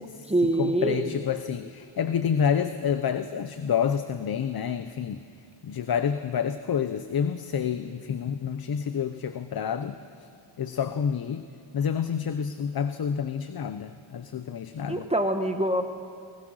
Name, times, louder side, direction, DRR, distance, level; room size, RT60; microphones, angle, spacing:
voice 1, 0.0-1.1 14.9-15.8, right 1 dB, 15° right, 5 dB, 1.1 m, -25 dB
voice 2, 0.6-5.2 5.6-10.0 10.6-11.5 11.7-15.1, left 7 dB, 50° left, 10 dB, 0.8 m, -28 dB
30.0 x 19.5 x 6.4 m, 2.3 s
wide cardioid pair, 130°, 48 cm